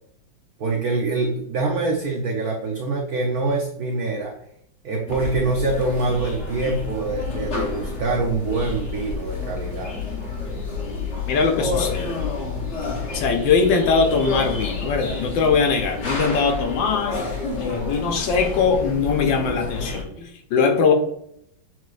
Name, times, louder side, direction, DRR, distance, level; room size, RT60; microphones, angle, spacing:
voice 1, 0.6-4.3 4.8-9.9, right 3 dB, 70° right, 1 dB, 0.9 m, -25 dB
sound 1, 5.1-20.0, left 3 dB, 50° left, 0.9 m, -29 dB
voice 2, 11.3-12.2 13.1-17.3 17.6-20.9, left 5 dB, 70° left, 4 dB, 1.4 m, -21 dB
7.3 x 3.0 x 2.4 m, 0.72 s
omnidirectional pair, 2.2 m